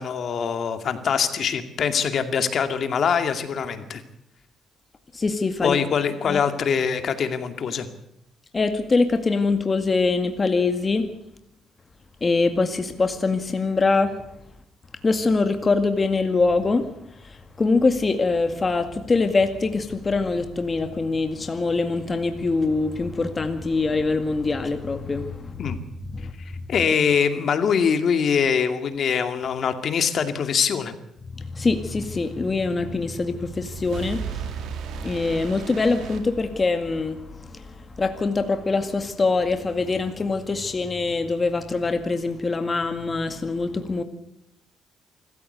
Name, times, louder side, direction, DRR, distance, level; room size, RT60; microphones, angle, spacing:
voice 1, 0.0-4.0 5.6-7.9 25.6-25.8 26.4-30.9, left 7 dB, 60° left, 9 dB, 2.3 m, -23 dB
voice 2, 5.1-5.8 6.3-6.4 8.5-11.1 12.2-14.2 15.0-25.8 26.1-26.3 31.3-44.0, left 3 dB, 30° left, 7 dB, 2.0 m, -24 dB
sound 1, 33.4-37.0, right 7 dB, 80° right, 2.8 m, -35 dB
25.5 x 14.5 x 8.1 m, 0.79 s
cardioid pair, 90°, 0 cm